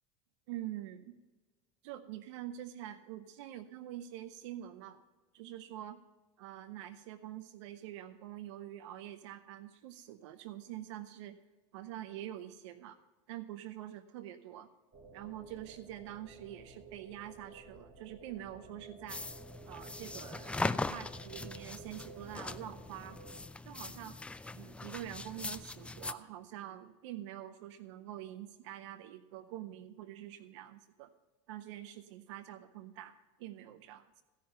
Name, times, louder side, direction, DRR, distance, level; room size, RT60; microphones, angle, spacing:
voice 1, 0.5-1.2 1.8-5.0 5.3-6.0 6.4-11.4 11.7-13.0 13.3-14.7 15.1-19.2 19.7-23.2 23.6-24.2 24.5-31.1 31.5-34.2, right 12 dB, 80° right, 12 dB, 0.6 m, -46 dB
sound 1, 14.9-23.4, right 3 dB, 30° right, 3.0 m, -54 dB
sound 2, 19.1-26.1, left 3 dB, 10° left, 0.4 m, -40 dB
16.0 x 5.7 x 6.6 m, 1.2 s
supercardioid pair, 105°, 15 cm